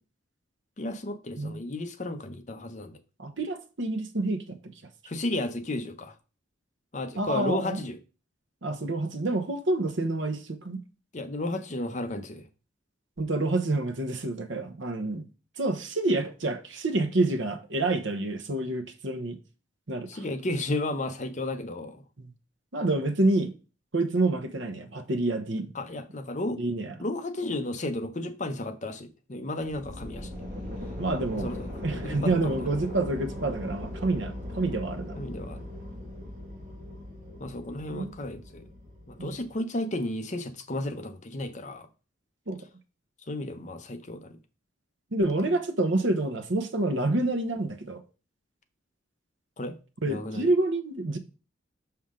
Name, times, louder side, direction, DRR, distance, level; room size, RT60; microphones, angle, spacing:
voice 1, 0.8-3.0 5.1-6.1 6.9-8.0 11.1-12.4 20.1-22.0 25.7-26.6 27.0-30.3 31.3-32.6 35.2-35.6 37.4-38.6 39.1-41.9 43.3-44.4 45.2-45.6 49.6-49.8 50.1-50.5, left 2 dB, 40° left, 0.8 m, -33 dB
voice 2, 3.2-4.6 7.2-7.8 8.6-10.8 13.2-15.2 15.6-19.4 19.9-20.1 22.2-22.3 22.7-23.5 23.9-25.7 26.6-26.9 31.0-31.5 31.8-35.2 37.9-38.1 39.2-39.4 42.5-42.6 45.1-48.0 50.0-51.2, right 2 dB, 70° right, 1.0 m, -28 dB
sound 1, 29.6-39.6, left 1 dB, 45° right, 2.6 m, -39 dB
6.3 x 5.8 x 3.7 m
head